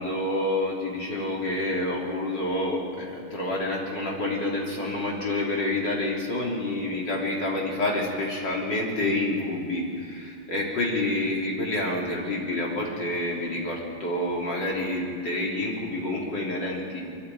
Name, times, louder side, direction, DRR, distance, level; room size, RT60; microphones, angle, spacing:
voice 1, 0.0-17.0, left 1 dB, 60° left, -2 dB, 4.0 m, -28 dB
24.5 x 11.5 x 9.2 m, 2.3 s
omnidirectional pair, 2.2 m